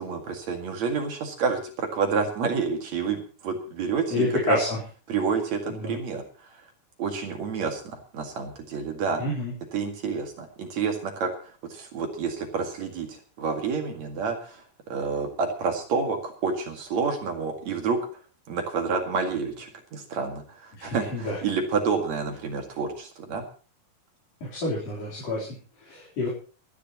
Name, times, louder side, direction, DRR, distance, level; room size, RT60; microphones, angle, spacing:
voice 1, 0.0-4.6 5.1-6.6 7.0-9.2 9.7-18.0 18.5-23.4, right 5 dB, 60° right, 3 dB, 3.3 m, -29 dB
voice 2, 4.1-4.8 5.7-6.0 9.2-9.5 20.7-21.4 24.5-25.5 25.8-26.3, left 2 dB, 50° left, -6 dB, 5.0 m, -28 dB
28.5 x 10.0 x 3.1 m, 0.38 s
omnidirectional pair, 3.7 m